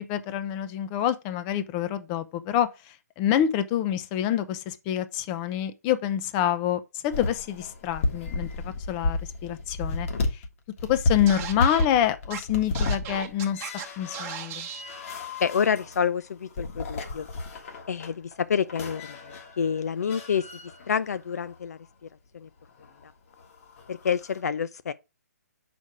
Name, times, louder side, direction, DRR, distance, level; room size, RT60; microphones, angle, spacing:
voice 1, 0.0-10.4 10.8-14.7, left 10 dB, 30° left, 0.7 m, -27 dB
sound 1, 7.1-10.5 10.8-21.6 22.7-23.0 23.4-24.4, left 2 dB, 50° left, 1.7 m, -32 dB
Scratching (performance technique), 11.3-11.9 12.3-12.4 12.7-13.8 14.1-14.8, right 9 dB, 25° right, 1.1 m, -36 dB
voice 2, 15.4-17.3 17.9-20.5 20.9-21.8 22.3-22.5 23.9-24.9, left 7 dB, 65° left, 0.5 m, -28 dB
6.4 x 5.2 x 4.8 m
hypercardioid pair, 135°, 9 cm